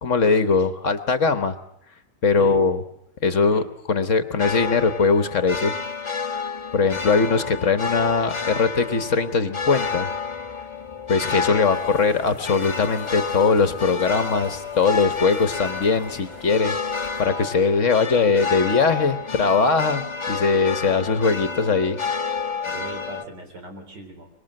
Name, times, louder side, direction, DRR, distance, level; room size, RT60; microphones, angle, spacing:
voice 1, 0.0-1.5 2.2-2.8 3.2-5.7 6.7-10.1 11.1-22.0, left 4 dB, 50° left, 11 dB, 1.4 m, -21 dB
sound 1, 4.4-23.2, left 5 dB, 20° left, 1.0 m, -30 dB
sound 2, 11.6-17.3, equal, 55° right, 5.8 m, -45 dB
voice 2, 22.6-24.3, right 2 dB, 85° right, 4 dB, 4.4 m, -38 dB
24.5 x 21.5 x 7.6 m, 0.75 s
omnidirectional pair, 1.8 m